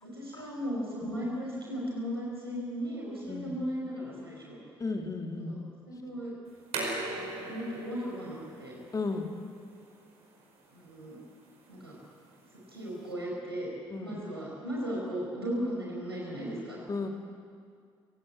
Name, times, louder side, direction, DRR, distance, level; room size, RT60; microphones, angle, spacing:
voice 1, 0.0-4.6 5.4-5.6 5.9-6.3 7.1-8.8 10.7-11.2 11.7-12.0 12.7-13.7 14.0-16.8, equal, 90° right, -4 dB, 5.4 m, -36 dB
voice 2, 4.8-5.6 8.9-9.3 13.9-14.2 16.9-17.1, left 3 dB, 30° left, 4 dB, 2.9 m, -34 dB
sound 1, 6.5-13.1, right 2 dB, 55° right, 5.4 m, -41 dB
27.0 x 17.0 x 8.7 m, 2.2 s
figure-of-eight pair, 45°, 13 cm